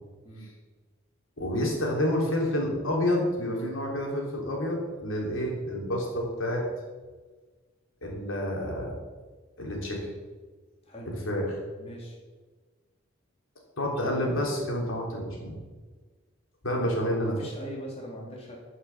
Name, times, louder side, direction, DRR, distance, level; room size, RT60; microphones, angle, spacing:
voice 1, 1.4-6.6 8.0-8.9 9.6-10.1 11.1-11.4 13.8-15.6 16.6-17.4, left 1 dB, 85° left, -1 dB, 3.3 m, -29 dB
voice 2, 11.8-12.2 17.2-18.5, equal, 30° left, -2 dB, 2.7 m, -41 dB
12.5 x 6.5 x 7.1 m, 1.4 s
head